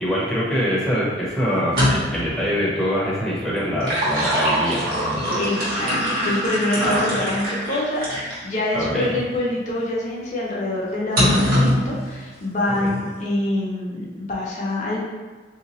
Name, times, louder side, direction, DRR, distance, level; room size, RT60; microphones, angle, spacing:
voice 1, 0.0-5.3 6.8-7.2 8.7-9.1 12.8-13.0, equal, ahead, -7 dB, 0.7 m, -24 dB
sound 1, 1.6-2.3 3.6-8.4 9.0-9.1 11.2-11.8, equal, 55° right, 1.2 m, -22 dB
voice 2, 5.3-5.9 6.2-15.0, left 1 dB, 40° left, -4 dB, 0.6 m, -25 dB
3.4 x 2.8 x 2.9 m, 1.4 s
head